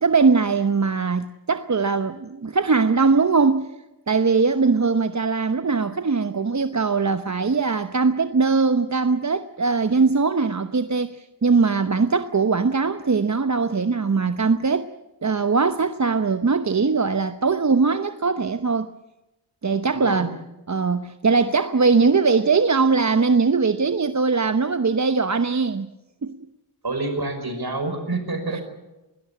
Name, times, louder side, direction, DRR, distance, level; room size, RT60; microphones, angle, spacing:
voice 1, 0.0-3.7 4.1-14.9 15.2-18.9 19.6-20.3 20.7-25.9 26.2-26.3 28.5-28.6, right 4 dB, 40° right, 0.9 m, -21 dB
voice 2, 19.9-20.3 26.8-28.6, right 2 dB, 55° right, 5.6 m, -27 dB
22.0 x 17.5 x 8.5 m
cardioid pair, 40°, 43 cm